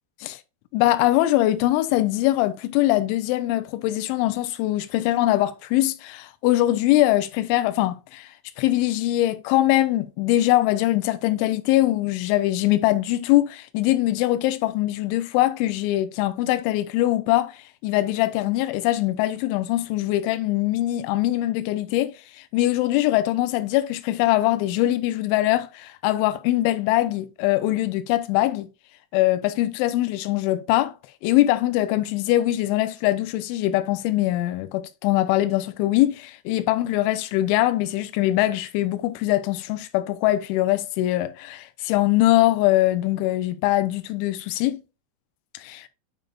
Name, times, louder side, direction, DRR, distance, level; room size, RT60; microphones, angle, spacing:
voice 1, 0.7-8.3 8.6-28.7 29.1-31.0 31.2-44.8 45.5-45.8, left 15 dB, 85° left, 2.8 m, -22 dB
9.1 x 5.2 x 2.4 m
omnidirectional pair, 5.7 m